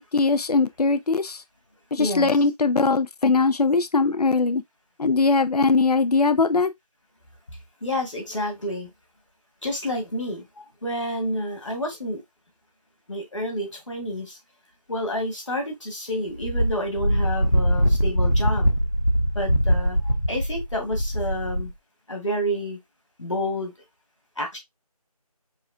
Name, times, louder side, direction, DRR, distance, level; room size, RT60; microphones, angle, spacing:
voice 1, 0.0-1.4 1.9-4.6 5.0-6.7, left 4 dB, 80° left, 0.6 m, -21 dB
voice 2, 2.0-2.3 7.8-8.9 9.6-10.4 10.8-12.2 13.1-14.4 14.9-18.7 19.4-21.7 22.1-22.8 23.2-23.7 24.4-24.6, left 1 dB, 50° left, 2.0 m, -29 dB
Wind, 16.4-21.7, equal, 30° left, 0.6 m, -22 dB
4.7 x 2.6 x 3.5 m
figure-of-eight pair, 175°, 20 cm